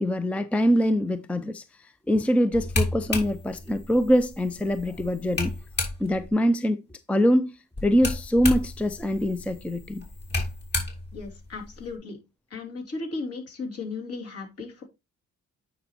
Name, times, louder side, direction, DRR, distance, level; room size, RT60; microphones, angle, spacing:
voice 1, 0.0-5.5 6.0-6.8 7.1-7.5 7.8-10.1, equal, 5° left, 0.5 m, -24 dB
sound 1, 2.5-6.3 7.7-11.9, left 2 dB, 35° left, 2.9 m, -33 dB
voice 2, 11.1-12.2 12.5-14.8, left 3 dB, 50° left, 2.9 m, -35 dB
9.4 x 5.1 x 2.9 m
cardioid pair, 90°, 30 cm